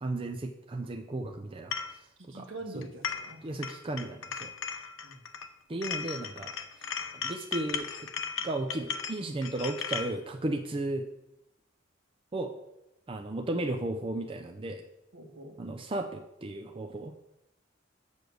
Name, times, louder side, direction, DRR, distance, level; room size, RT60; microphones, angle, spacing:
voice 1, 0.0-2.1 2.3-2.5 2.7-2.9 3.4-4.5 5.7-6.5 6.8-8.1 8.4-11.1 12.3-12.5 13.1-14.8 15.6-17.1, right 2 dB, 25° right, 4 dB, 0.5 m, -35 dB
sound 1, 1.7-1.9 2.8-3.4 3.6-5.5 5.8-10.1, left 6 dB, 80° left, 0.7 m, -36 dB
voice 2, 2.2-3.5 5.0-5.2 15.1-15.6, right 2 dB, 70° right, 2 dB, 1.6 m, -44 dB
6.9 x 6.6 x 6.2 m, 0.90 s
head